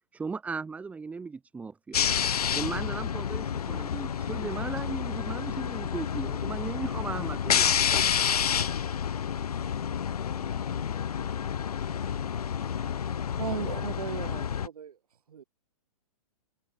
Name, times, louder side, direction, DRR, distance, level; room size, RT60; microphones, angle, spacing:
voice 1, 0.1-2.0 2.5-7.7, right 4 dB, 5° right, 0.8 m, -37 dB
sound 1, 1.9-14.7, left 8 dB, 90° left, 0.8 m, -29 dB
voice 2, 10.2-12.3 12.8-13.8, left 18 dB, 30° left, 5.2 m, -51 dB
voice 3, 13.4-14.9 15.3-15.4, right 8 dB, 80° right, 3.2 m, -36 dB
hypercardioid pair, 140°, 19 cm